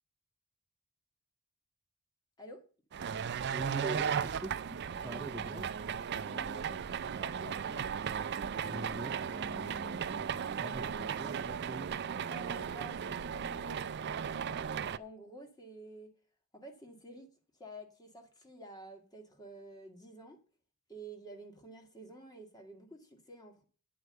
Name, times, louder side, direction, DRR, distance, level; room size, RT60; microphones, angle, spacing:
sound 1, 2.9-15.0, right 7 dB, 50° right, 0.4 m, -36 dB
voice 1, 3.5-5.8 8.6-11.9, right 2 dB, 5° right, 1 dB, 0.8 m, -44 dB
voice 2, 6.2-6.8 7.1-7.9 12.3-14.7 15.0-16.1 16.5-17.3 17.5-20.4 20.9-23.6, right 1 dB, 15° left, 4 dB, 1.7 m, -50 dB
9.4 x 4.9 x 7.7 m, 0.39 s
head